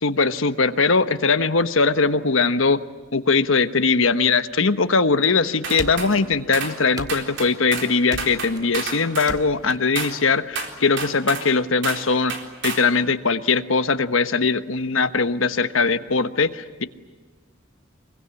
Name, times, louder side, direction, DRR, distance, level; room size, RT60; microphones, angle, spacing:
voice 1, 0.0-2.8 3.1-12.4 12.6-16.8, left 4 dB, 70° left, 10 dB, 1.2 m, -20 dB
sound 1, 5.6-6.1 6.5-6.8 7.1-7.9 8.2-9.3 9.9-10.2 10.5-11.5 11.8-12.0 12.3-12.9, right 5 dB, 60° right, 4.0 m, -30 dB
sound 2, 5.8-6.6 7.0-7.6 8.1-8.7 9.3-9.8, right 1 dB, 20° right, 1.5 m, -36 dB
25.0 x 22.5 x 9.8 m, 1.4 s
head